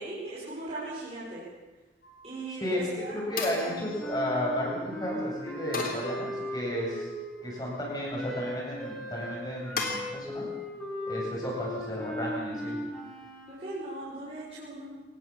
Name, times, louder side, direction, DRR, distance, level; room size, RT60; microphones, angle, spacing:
voice 1, 0.0-1.4 2.2-3.2 3.5-3.8 12.9-13.0 13.5-14.8, right 2 dB, 35° right, -7 dB, 6.3 m, -39 dB
sound 1, 2.0-2.5 3.4-4.7 5.7-6.8 7.4-8.0 9.8-10.0, left 4 dB, 50° left, 3.8 m, -38 dB
voice 2, 2.6-7.1 7.4-10.5 11.1-12.8, equal, 20° left, -2 dB, 8.0 m, -33 dB
Wind instrument woodwind instrument, 3.3-7.4 8.1-13.6, left 1 dB, 5° left, 6.5 m, -38 dB
24.0 x 19.5 x 7.7 m, 1.2 s
head